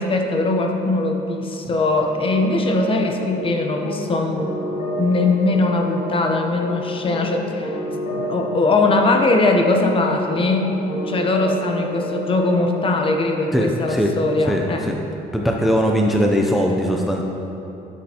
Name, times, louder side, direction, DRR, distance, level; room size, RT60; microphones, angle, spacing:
voice 1, 0.0-4.5 5.0-7.8 8.1-10.8 11.1-14.9, left 2 dB, 30° left, 3 dB, 0.8 m, -20 dB
sound 1, 2.0-12.8, equal, 55° left, 2.0 m, -30 dB
voice 2, 13.5-14.1 14.5-15.0 15.3-17.2, equal, ahead, 0 dB, 0.5 m, -20 dB
10.0 x 7.6 x 2.9 m, 2.9 s
cardioid pair, 110°, 17 cm